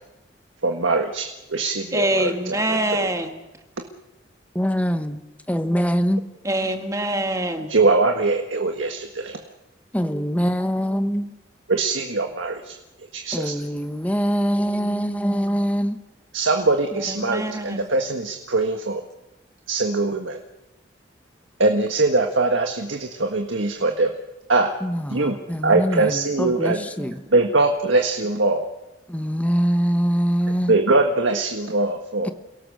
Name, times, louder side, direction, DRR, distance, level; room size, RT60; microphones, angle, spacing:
voice 1, 0.6-2.6 2.9-3.1 7.7-9.4 11.7-12.8 13.1-13.5 16.3-19.0 19.7-20.4 21.6-24.1 24.5-24.7 25.1-25.4 25.6-26.8 27.3-28.7 30.7-32.3, right 3 dB, 90° right, 4 dB, 1.6 m, -22 dB
voice 2, 1.9-3.4 6.4-7.7 16.9-17.8 27.0-27.1, right 1 dB, 15° right, 5 dB, 1.8 m, -25 dB
voice 3, 4.5-5.2 5.5-6.2 9.9-11.3 13.3-16.0 24.8-27.2 29.1-30.7 32.2-32.3, equal, 10° left, 9 dB, 1.1 m, -23 dB
28.5 x 17.5 x 6.6 m, 1.0 s
head